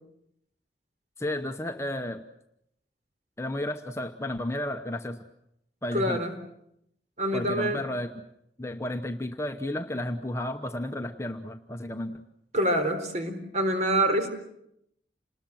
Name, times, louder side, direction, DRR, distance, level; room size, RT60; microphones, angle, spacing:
voice 1, 1.2-2.2 3.4-5.2 5.8-6.2 7.3-8.2 8.6-12.2, left 1 dB, 15° left, 6 dB, 1.0 m, -32 dB
voice 2, 5.9-6.3 7.2-7.8 12.5-14.3, right 1 dB, 40° right, 6 dB, 3.8 m, -26 dB
28.0 x 20.5 x 7.7 m, 0.78 s
head